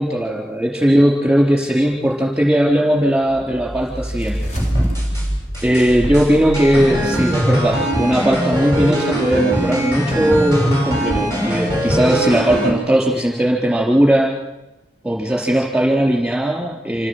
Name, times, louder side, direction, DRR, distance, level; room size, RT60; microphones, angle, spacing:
voice 1, 0.0-4.4 5.6-14.3 15.0-17.1, right 1 dB, 5° right, -2 dB, 3.9 m, -18 dB
sound 1, 3.3-7.5, equal, 40° left, 3.8 m, -26 dB
sound 2, 4.6-5.3 5.5-12.7, equal, 15° left, 6.6 m, -21 dB
27.0 x 16.0 x 8.1 m, 0.97 s
head